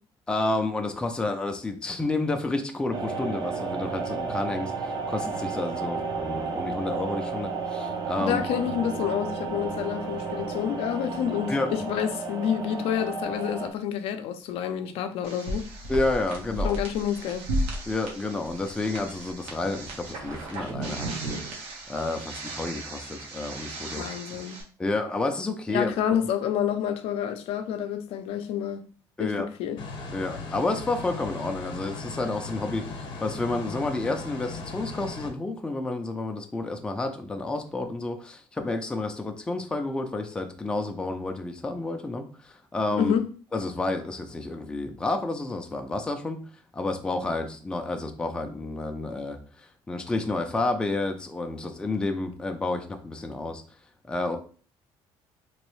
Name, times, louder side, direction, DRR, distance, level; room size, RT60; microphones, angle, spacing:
voice 1, 0.3-8.4 11.5-11.7 15.9-16.8 17.9-24.4 24.8-25.9 29.2-29.5 30.1-43.1 43.5-46.4 46.7-53.6 54.0-54.4, left 2 dB, 10° left, 0.4 m, -30 dB
sound 1, 2.9-13.7, right 4 dB, 40° right, 0.6 m, -32 dB
voice 2, 8.2-15.7 16.6-17.5 23.9-24.6 25.7-28.8 29.2-29.8 43.0-43.2, left 9 dB, 70° left, 0.5 m, -28 dB
sound 2, 15.2-24.6, right 1 dB, 85° right, 1.0 m, -35 dB
sound 3, 29.8-35.3, left 3 dB, 55° left, 0.8 m, -38 dB
3.1 x 2.9 x 3.1 m
cardioid pair, 135°, 10 cm